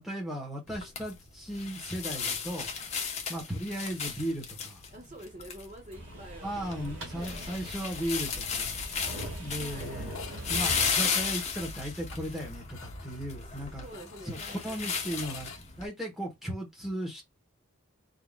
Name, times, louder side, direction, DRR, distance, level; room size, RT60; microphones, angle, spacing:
voice 1, 0.0-2.7 3.3-4.8 6.4-8.7 9.4-10.2 10.5-13.9 14.2-15.5 15.8-17.2, equal, ahead, 1.4 m, -36 dB
sound 1, 0.7-15.8, left 6 dB, 30° left, 0.9 m, -35 dB
voice 2, 4.9-7.7 9.5-9.9 13.8-14.8, right 1 dB, 35° right, 1.1 m, -47 dB
sound 2, 5.9-10.9, right 1 dB, 55° right, 2.4 m, -41 dB
sound 3, 8.0-8.5 8.8-8.9 9.2-9.3 10.0-15.6, left 6 dB, 70° left, 1.0 m, -49 dB
4.7 x 3.8 x 2.5 m
head